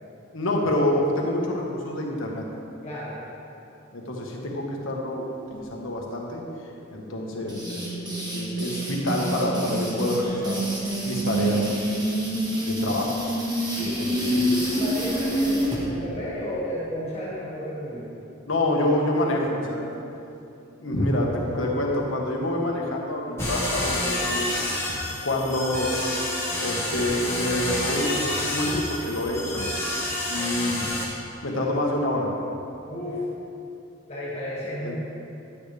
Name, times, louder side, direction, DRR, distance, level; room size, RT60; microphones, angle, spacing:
voice 1, 0.3-2.4 3.9-6.4 6.9-10.6 11.0-13.1 13.8-14.5 18.5-19.9 20.8-24.5 24.8-24.9 25.2-25.9 26.6-29.6 30.3-30.8 31.4-32.3 34.8-35.0, left 1 dB, 80° left, -1 dB, 1.5 m, -27 dB
voice 2, 2.8-3.2 13.8-18.1 32.9-33.2 34.1-35.0, left 1 dB, 30° left, -7 dB, 2.1 m, -32 dB
sound 1, 7.5-15.8, right 1 dB, 20° right, 1.4 m, -27 dB
sound 2, 23.4-31.0, left 1 dB, 15° left, 1.5 m, -28 dB
11.5 x 8.8 x 3.5 m, 2.7 s
head